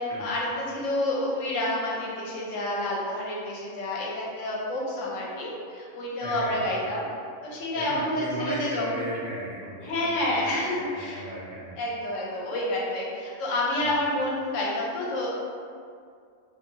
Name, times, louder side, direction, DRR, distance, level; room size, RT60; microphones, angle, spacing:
voice 1, 0.0-7.1 7.4-8.9 9.8-11.3 11.8-15.3, left 1 dB, 80° left, -4 dB, 1.0 m, -29 dB
voice 2, 6.2-6.6 7.7-10.5 10.9-11.7, right 1 dB, 60° right, -10 dB, 0.5 m, -35 dB
2.7 x 2.6 x 2.6 m, 2.2 s
omnidirectional pair, 1.3 m